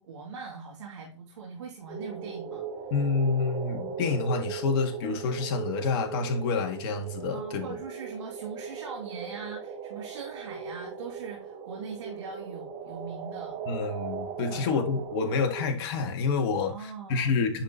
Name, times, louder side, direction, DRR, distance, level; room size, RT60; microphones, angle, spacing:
voice 1, 0.0-2.6 7.3-13.6 14.5-14.8 16.6-17.4, right 5 dB, 80° right, 2.6 m, -41 dB
Cursed Woods, 1.9-15.6, right 6 dB, 40° right, 1.7 m, -38 dB
voice 2, 2.9-7.7 13.7-17.6, left 5 dB, 50° left, 1.8 m, -28 dB
10.0 x 4.1 x 3.0 m
hypercardioid pair, 125°, 16 cm